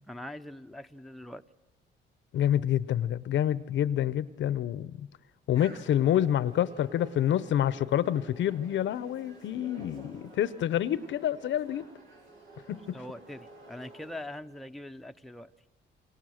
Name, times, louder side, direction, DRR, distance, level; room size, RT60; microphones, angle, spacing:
voice 1, 0.1-1.4 12.9-15.5, left 1 dB, ahead, 6 dB, 0.7 m, -42 dB
voice 2, 2.3-5.1 5.5-11.9 12.7-13.0, left 11 dB, 70° left, 17 dB, 0.8 m, -28 dB
sound 1, 5.5-14.2, right 2 dB, 85° right, 6.7 m, -51 dB
27.5 x 24.0 x 6.5 m, 1.2 s
cardioid pair, 90°, 20 cm